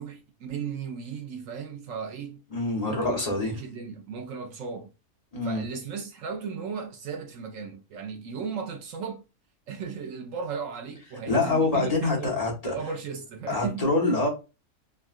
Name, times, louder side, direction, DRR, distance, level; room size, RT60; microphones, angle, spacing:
voice 1, 0.0-2.4 2.8-4.9 5.4-9.2 9.7-13.9, right 6 dB, 65° right, 0.8 m, -36 dB
voice 2, 2.5-3.5 5.3-5.6 11.3-12.7 13.5-14.3, left 2 dB, 30° left, 0.8 m, -25 dB
3.6 x 2.3 x 2.4 m
omnidirectional pair, 1.7 m